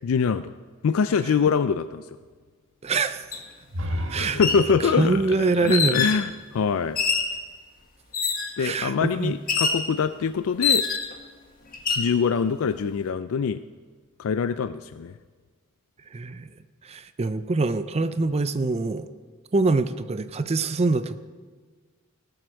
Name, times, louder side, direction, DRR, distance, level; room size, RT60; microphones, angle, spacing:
voice 1, 0.0-0.5 0.8-2.1 4.2-7.0 8.6-10.9 12.0-13.6 14.2-15.1, left 6 dB, 85° left, 12 dB, 0.4 m, -24 dB
voice 2, 2.8-3.2 4.1-4.4 4.8-6.1 8.6-9.4 16.1-16.5 16.8-19.1 19.5-21.2, right 3 dB, 30° right, 12 dB, 0.5 m, -24 dB
sound 1, 3.3-3.4 4.3-4.7 5.7-6.2 7.0-7.4 8.1-8.6 9.5-9.8 10.6-11.2 11.7-12.1, left 5 dB, 45° left, 1.5 m, -24 dB
sound 2, 3.7-7.5, left 1 dB, 65° right, 1.6 m, -35 dB
18.0 x 7.8 x 6.3 m, 1.5 s
head